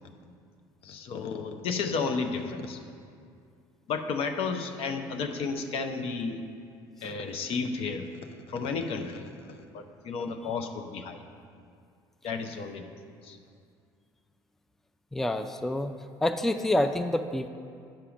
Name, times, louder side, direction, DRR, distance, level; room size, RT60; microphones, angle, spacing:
voice 1, 0.8-2.8 3.9-6.4 7.0-11.2 12.2-12.8 13.2-13.4, left 4 dB, 60° left, 6 dB, 0.7 m, -33 dB
voice 2, 15.1-15.9 16.2-17.5, left 1 dB, 5° left, 9 dB, 0.4 m, -27 dB
9.0 x 5.6 x 5.1 m, 2.3 s
hypercardioid pair, 65°, 11 cm